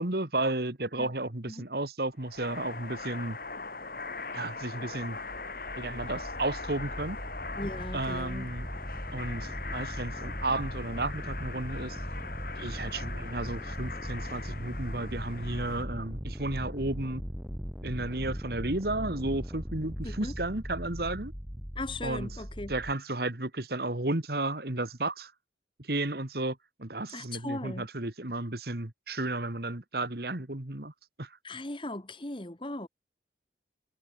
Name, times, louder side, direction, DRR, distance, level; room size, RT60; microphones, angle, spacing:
voice 1, 0.0-3.4 4.3-5.2 5.8-7.2 7.9-8.7 9.1-12.0 12.6-17.2 17.8-21.3 22.0-22.4 22.7-25.3 25.8-30.9 31.2-31.4, right 2 dB, 55° right, 2.1 m, -33 dB
sound 1, 2.2-15.8, left 4 dB, 50° left, 7.0 m, -41 dB
sound 2, 5.1-22.9, equal, 5° right, 2.6 m, -39 dB
voice 2, 7.6-8.5 20.0-20.3 21.7-22.7 27.1-27.9 31.4-32.9, left 1 dB, 25° left, 1.6 m, -38 dB
head